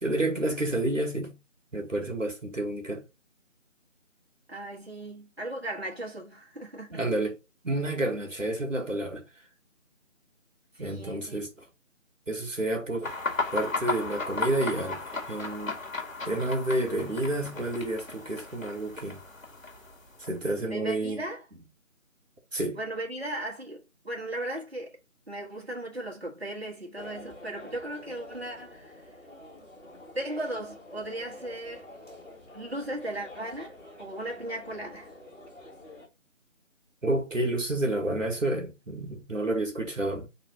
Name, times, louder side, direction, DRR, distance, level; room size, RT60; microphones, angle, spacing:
voice 1, 0.0-1.4 1.7-3.0 6.9-7.4 7.6-9.2 10.8-11.7 12.3-13.1 13.5-15.0 15.3-15.8 16.3-19.2 20.2-21.2 22.5-22.8 37.0-40.3, right 1 dB, 70° right, 1.8 m, -29 dB
voice 2, 4.5-7.0 10.7-11.4 20.6-21.5 22.7-25.0 25.3-29.1 30.2-31.9 32.5-35.1, right 1 dB, 50° right, 1.7 m, -37 dB
sound 1, 13.0-20.5, left 3 dB, 80° left, 1.6 m, -35 dB
sound 2, 27.0-36.1, left 1 dB, 60° left, 1.8 m, -47 dB
4.0 x 2.8 x 4.8 m
figure-of-eight pair, 170°, 40 cm